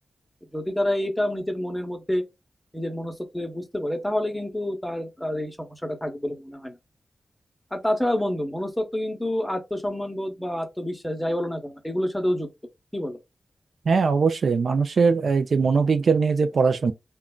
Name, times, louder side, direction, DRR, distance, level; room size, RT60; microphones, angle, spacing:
voice 1, 0.5-2.2 2.7-6.8 7.7-12.5 12.9-13.2, left 1 dB, 5° left, 0.8 m, -28 dB
voice 2, 13.9-16.9, right 5 dB, 75° right, 0.3 m, -21 dB
3.7 x 2.2 x 2.2 m
wide cardioid pair, 90°, 0 cm